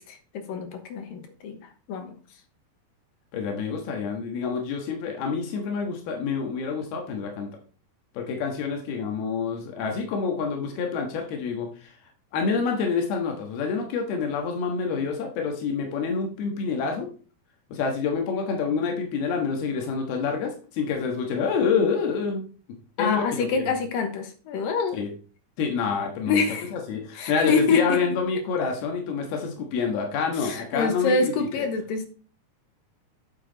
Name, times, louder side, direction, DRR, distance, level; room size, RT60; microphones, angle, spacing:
voice 1, 0.0-1.6 1.9-2.1 23.0-25.0 26.3-26.7 27.1-28.2 30.3-32.1, left 4 dB, 75° left, 6 dB, 2.8 m, -26 dB
voice 2, 3.3-7.5 8.2-11.9 12.3-17.1 17.7-22.4 23.0-23.5 24.9-25.1 25.6-26.4 26.7-31.1 31.6-31.7, left 5 dB, 90° left, 2 dB, 3.4 m, -27 dB
9.4 x 7.5 x 4.0 m, 0.39 s
omnidirectional pair, 4.3 m